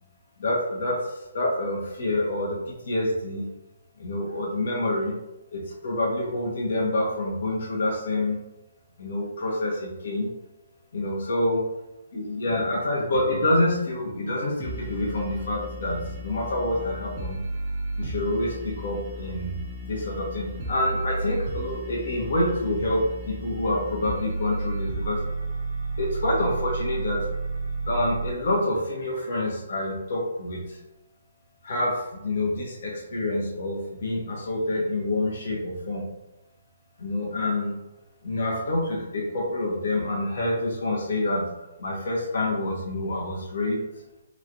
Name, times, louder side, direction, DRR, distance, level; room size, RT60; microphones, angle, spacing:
voice 1, 0.4-3.5 4.0-5.2 5.5-8.4 9.0-10.3 10.9-11.6 12.1-17.4 18.0-25.2 26.0-27.3 27.9-30.8 31.6-36.1 37.0-37.8 38.2-41.5 41.8-43.8, left 1 dB, 55° left, -2 dB, 0.7 m, -27 dB
sound 1, 14.6-28.3, right 2 dB, 40° right, 0.6 m, -33 dB
3.0 x 2.4 x 2.6 m, 0.94 s
figure-of-eight pair, 135°, 0 cm